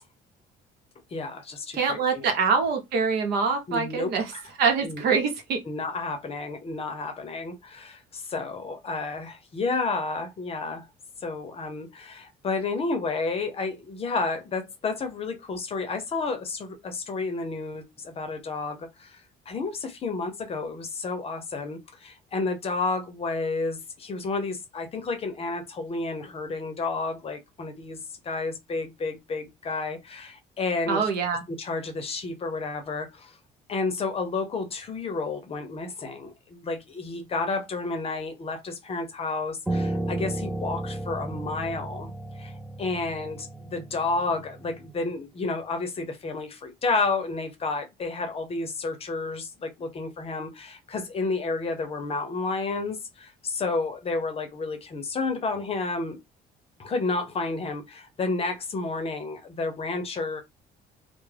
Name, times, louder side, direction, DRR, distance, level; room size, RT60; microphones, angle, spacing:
voice 1, 1.1-2.3 3.7-4.4 4.8-5.2 5.7-10.9 11.2-19.2 19.5-31.1 31.5-33.3 33.7-42.1 42.4-42.5 42.8-56.2 56.8-60.4, left 3 dB, 35° left, 0.6 m, -31 dB
voice 2, 1.7-4.3 4.6-5.6 30.9-31.4, right 5 dB, 75° right, 0.8 m, -24 dB
Piano, 39.7-44.9, right 1 dB, 5° right, 0.3 m, -33 dB
2.2 x 2.1 x 3.2 m
cardioid pair, 110°, 17 cm